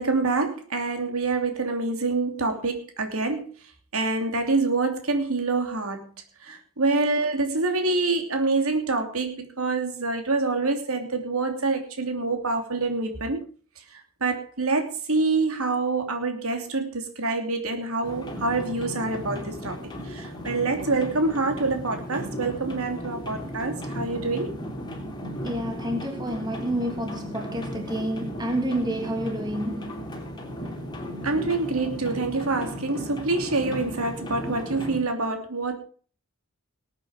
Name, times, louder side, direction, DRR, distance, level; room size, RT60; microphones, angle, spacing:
voice 1, 0.0-3.5 3.9-6.1 6.4-13.4 13.9-19.8 20.1-24.5 31.2-35.8, right 3 dB, 85° right, 3.0 m, -26 dB
sound 1, 18.0-35.0, equal, 20° left, 3.0 m, -36 dB
voice 2, 25.4-30.0 31.0-31.1, right 1 dB, 20° right, 3.0 m, -29 dB
19.5 x 8.8 x 5.1 m
head